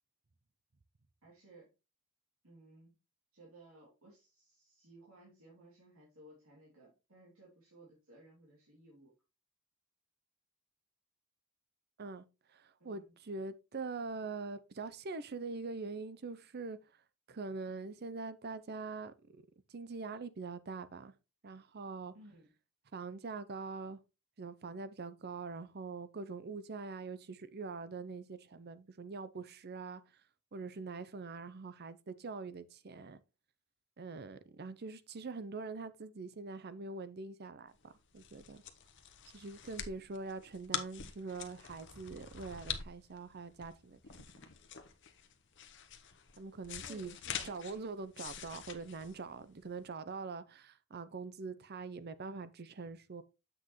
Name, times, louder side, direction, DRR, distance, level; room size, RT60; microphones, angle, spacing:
voice 1, 1.2-1.7 2.4-3.0 3.3-9.1 12.8-13.2 22.1-22.5 46.8-47.6, right 2 dB, 75° right, 3.0 m, -59 dB
voice 2, 12.5-16.8 17.3-19.4 19.7-21.1 21.4-22.1 22.9-24.0 24.4-30.0 30.5-33.2 34.0-38.6 39.3-44.3 46.4-47.2 47.4-53.2, right 4 dB, 50° right, 0.6 m, -44 dB
sound 1, 37.8-49.8, left 8 dB, 55° left, 0.9 m, -45 dB
7.7 x 6.2 x 3.1 m
head